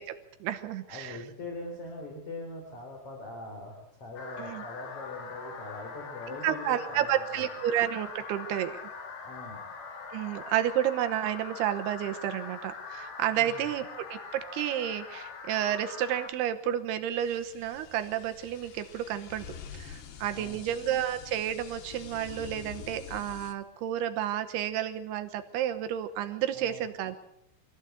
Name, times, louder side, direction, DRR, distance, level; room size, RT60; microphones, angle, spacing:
voice 1, 0.0-1.2 4.4-4.6 6.4-8.8 10.1-19.5 19.7-27.2, right 11 dB, 85° right, 8 dB, 3.1 m, -31 dB
voice 2, 0.9-7.4 9.2-9.6 13.3-13.7 20.3-20.7 26.5-26.9, left 2 dB, 35° left, 0 dB, 4.8 m, -42 dB
sound 1, 4.2-16.3, left 5 dB, 70° left, 4.5 m, -42 dB
sound 2, 17.2-23.5, left 7 dB, 90° left, 3.9 m, -46 dB
25.0 x 15.5 x 8.1 m, 0.78 s
omnidirectional pair, 4.6 m